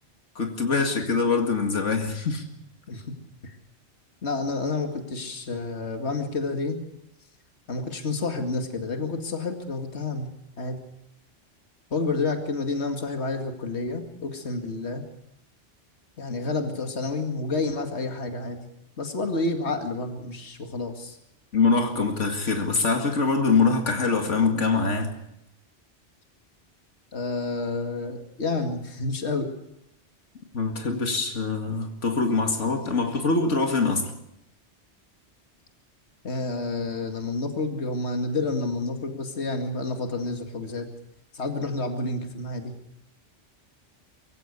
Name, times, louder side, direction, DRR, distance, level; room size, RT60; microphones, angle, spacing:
voice 1, 0.4-2.4 21.5-25.1 30.5-34.1, left 4 dB, 90° left, 2.4 m, -24 dB
voice 2, 4.2-6.8 7.7-10.3 10.6-10.8 11.9-15.0 16.2-18.6 19.0-21.2 27.1-29.5 36.2-40.9 41.3-42.7, left 3 dB, 65° left, 2.4 m, -29 dB
23.5 x 16.0 x 8.2 m
omnidirectional pair, 1.2 m